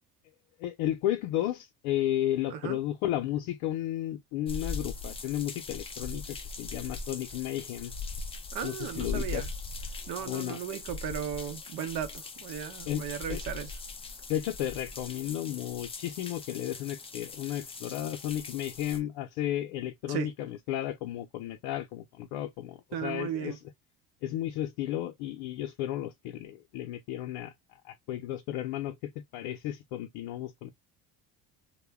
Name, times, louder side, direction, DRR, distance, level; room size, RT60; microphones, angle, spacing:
voice 1, 0.6-7.9 8.6-9.5 10.2-10.6 12.9-13.4 14.3-23.6 24.2-27.5 27.8-30.7, left 12 dB, 75° left, 0.6 m, -33 dB
sound 1, 4.5-19.0, left 4 dB, 15° left, 0.3 m, -40 dB
voice 2, 8.5-9.5 10.1-13.7 20.1-20.3 22.9-23.6, right 9 dB, 65° right, 0.8 m, -36 dB
2.2 x 2.1 x 3.4 m
supercardioid pair, 85°, 42 cm